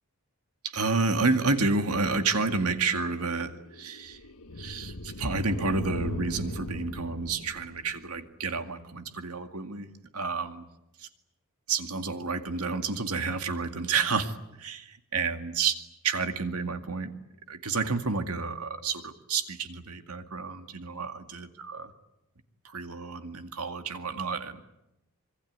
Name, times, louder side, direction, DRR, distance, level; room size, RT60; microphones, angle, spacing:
voice 1, 0.6-4.2 4.6-9.9 10.1-10.6 11.0-11.1 11.7-14.3 14.6-15.7 16.0-17.1 17.5-21.9 22.6-24.6, right 4 dB, 90° right, 8 dB, 2.2 m, -30 dB
sound 1, 2.8-8.3, left 1 dB, 75° left, 1.3 m, -39 dB
26.0 x 23.0 x 9.6 m, 0.90 s
head